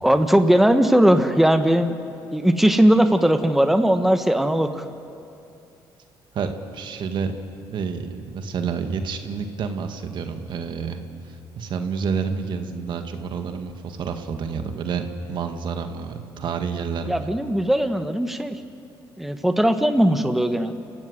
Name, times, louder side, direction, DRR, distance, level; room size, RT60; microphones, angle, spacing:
voice 1, 0.0-2.0 2.3-4.8 17.1-18.6 19.2-20.7, right 1 dB, 5° right, 7 dB, 1.4 m, -19 dB
voice 2, 6.3-7.3 7.7-11.0 11.3-15.0 15.3-17.3, right 6 dB, 60° right, 6 dB, 1.9 m, -29 dB
29.0 x 16.0 x 8.1 m, 2.6 s
supercardioid pair, 70°, 9 cm